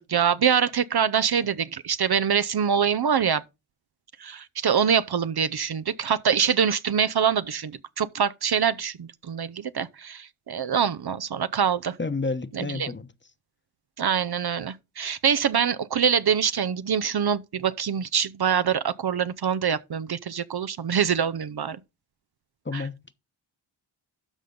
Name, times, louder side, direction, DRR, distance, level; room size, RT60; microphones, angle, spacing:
voice 1, 0.0-3.4 4.2-12.0 12.5-12.9 14.0-21.8 22.7-22.9, right 7 dB, 50° right, 0.7 m, -24 dB
voice 2, 12.0-13.1 22.7-22.9, left 3 dB, 20° left, 1.0 m, -30 dB
12.5 x 5.0 x 3.8 m
cardioid pair, 45°, 49 cm